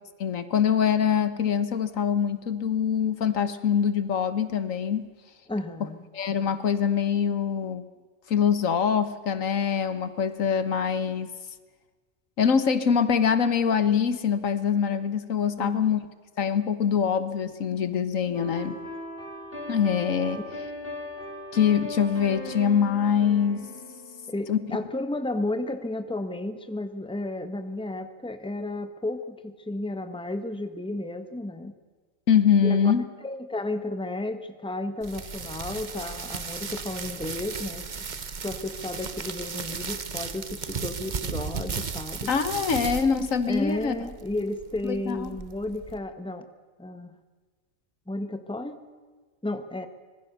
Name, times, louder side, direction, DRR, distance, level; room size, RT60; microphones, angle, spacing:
voice 1, 0.2-5.1 6.1-7.8 8.3-11.3 12.4-16.0 16.4-18.8 19.7-20.4 21.5-23.7 24.5-24.6 32.3-33.0 42.3-43.9 44.8-45.3, left 7 dB, 80° left, 12 dB, 1.6 m, -24 dB
voice 2, 5.5-6.0 15.6-15.8 24.3-31.7 32.6-32.9 33.2-37.9 38.4-42.3 43.5-46.5 46.8-47.1 48.1-48.8 49.4-49.9, left 2 dB, 5° left, 9 dB, 1.3 m, -33 dB
sound 1, 18.3-25.1, left 1 dB, 45° left, 5.3 m, -38 dB
sound 2, 35.0-46.0, right 5 dB, 40° right, 1.0 m, -36 dB
25.5 x 20.5 x 6.8 m, 1.4 s
omnidirectional pair, 1.4 m